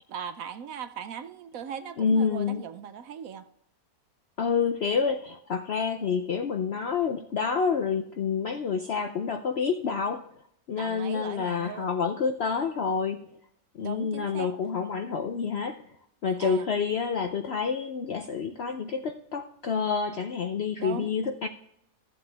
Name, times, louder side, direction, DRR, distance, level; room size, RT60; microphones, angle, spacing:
voice 1, 0.1-3.4 10.8-11.9 13.8-14.5 16.4-16.7 20.8-21.1, right 8 dB, 65° right, 1.0 m, -39 dB
voice 2, 2.0-2.6 4.4-10.3 10.7-13.2 13.8-15.8 16.2-21.5, left 5 dB, 60° left, 0.6 m, -28 dB
14.0 x 7.7 x 3.4 m
omnidirectional pair, 1.8 m